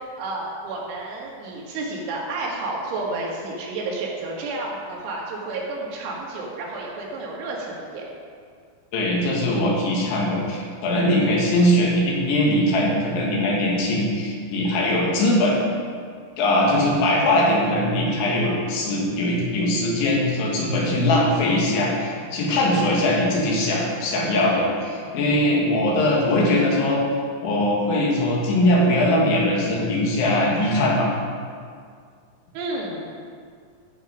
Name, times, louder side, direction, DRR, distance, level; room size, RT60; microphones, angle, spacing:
voice 1, 0.2-8.0 32.5-33.1, right 2 dB, 85° right, -3 dB, 4.4 m, -31 dB
voice 2, 8.9-15.6 16.4-27.0 27.4-31.1, left 1 dB, 80° left, -3 dB, 4.3 m, -21 dB
14.5 x 7.0 x 5.2 m, 2.1 s
omnidirectional pair, 5.3 m